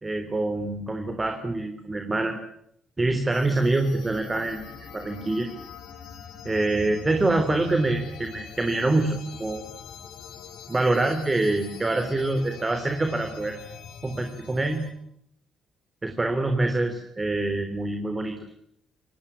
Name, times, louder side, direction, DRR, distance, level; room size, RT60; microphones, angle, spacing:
voice 1, 0.0-2.4 3.0-4.6 4.9-5.5 6.4-9.7 10.7-13.6 14.0-14.8 16.0-18.4, right 2 dB, 20° right, 6 dB, 3.4 m, -25 dB
sound 1, 3.3-14.9, left 6 dB, 85° left, 5.4 m, -43 dB
28.0 x 18.5 x 8.8 m, 0.74 s
cardioid pair, 90°, 0 cm